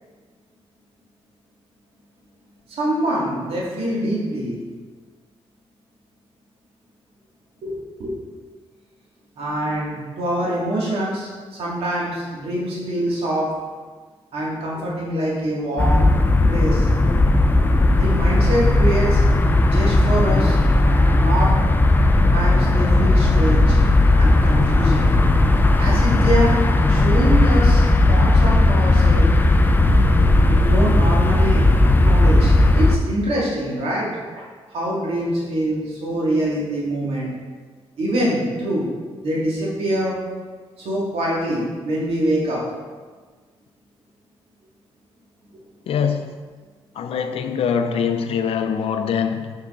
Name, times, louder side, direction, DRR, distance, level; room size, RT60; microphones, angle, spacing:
voice 1, 2.8-4.6 7.6-8.2 9.4-11.3 11.6-13.5 14.3-16.1 16.5-16.9 17.9-19.2 19.6-20.6 21.2-21.5 22.3-23.8 24.2-25.2 25.8-26.6 26.9-29.3 30.4-31.6 32.0-34.1 34.4-34.5 34.7-37.3 38.0-38.9 39.2-40.2 40.8-42.6, right 1 dB, 70° right, -5 dB, 2.2 m, -24 dB
sound 1, 15.8-33.0, left 2 dB, 20° left, 0.4 m, -16 dB
voice 2, 45.9-46.3 47.0-49.5, left 7 dB, 70° left, 8 dB, 0.5 m, -23 dB
6.9 x 5.6 x 3.8 m, 1.5 s
cardioid pair, 110°, 10 cm